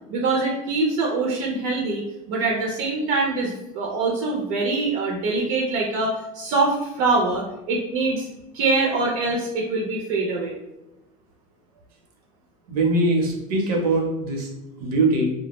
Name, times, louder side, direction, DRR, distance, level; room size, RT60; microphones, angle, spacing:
voice 1, 0.1-8.3 8.5-10.6, right 3 dB, 55° right, -1 dB, 0.5 m, -24 dB
voice 2, 12.7-14.5 14.8-15.3, right 2 dB, 90° right, 1 dB, 0.8 m, -22 dB
2.2 x 2.1 x 2.9 m, 0.93 s
supercardioid pair, 150°, 19 cm